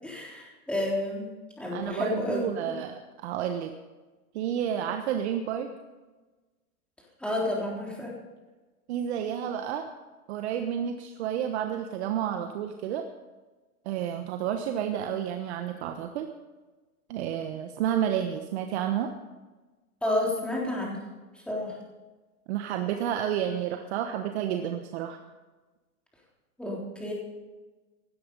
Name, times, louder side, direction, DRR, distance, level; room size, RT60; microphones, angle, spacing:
voice 1, 0.0-1.3 1.6-2.7 7.2-8.1 20.0-21.0 21.5-21.8 26.6-27.1, left 1 dB, ahead, -3 dB, 3.5 m, -30 dB
voice 2, 1.7-3.7 4.3-5.7 8.9-9.9 10.3-13.0 13.8-16.3 17.1-19.1 22.5-25.2, right 9 dB, 45° right, 6 dB, 1.2 m, -30 dB
17.0 x 12.0 x 5.5 m, 1.2 s
hypercardioid pair, 150°, 44 cm